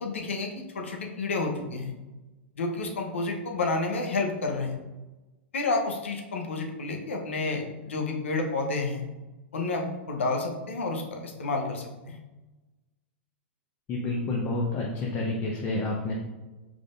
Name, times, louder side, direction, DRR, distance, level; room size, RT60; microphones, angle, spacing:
voice 1, 0.0-1.9 2.6-4.7 5.5-9.0 9.5-12.2, left 3 dB, 80° left, 2 dB, 0.8 m, -30 dB
voice 2, 13.9-16.2, left 2 dB, 35° left, -3 dB, 0.8 m, -29 dB
4.8 x 3.7 x 2.5 m, 1.1 s
hypercardioid pair, 105°, 7 cm